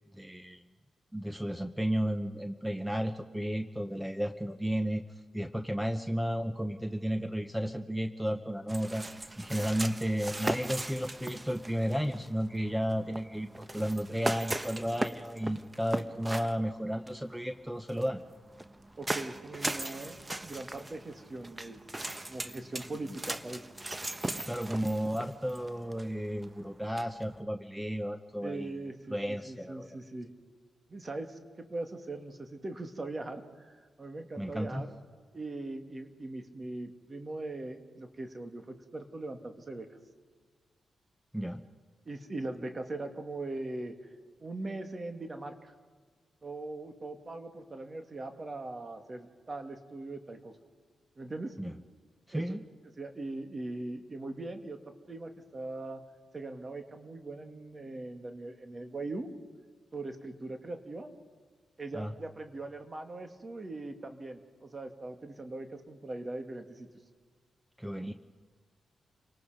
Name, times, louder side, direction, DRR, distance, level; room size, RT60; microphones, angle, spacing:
voice 1, 0.1-0.6 1.1-5.0 5.3-18.2 24.5-28.8 29.1-29.9 34.4-34.8 41.3-41.6 51.6-51.7 52.3-52.6 61.9-62.1 67.8-68.1, equal, 5° right, 8 dB, 1.0 m, -33 dB
sound 1, 8.7-27.4, right 1 dB, 20° right, 1.2 m, -39 dB
voice 2, 19.0-21.8 22.3-23.7 24.3-24.6 28.4-30.3 30.9-34.9 35.3-40.0 42.1-44.1 44.4-45.7 46.4-50.5 51.2-51.6 52.3-52.5 53.0-56.0 56.3-59.3 59.9-61.1 61.8-66.9, right 2 dB, 35° right, 6 dB, 2.4 m, -40 dB
29.5 x 18.5 x 5.2 m, 1.6 s
cardioid pair, 65°, 0 cm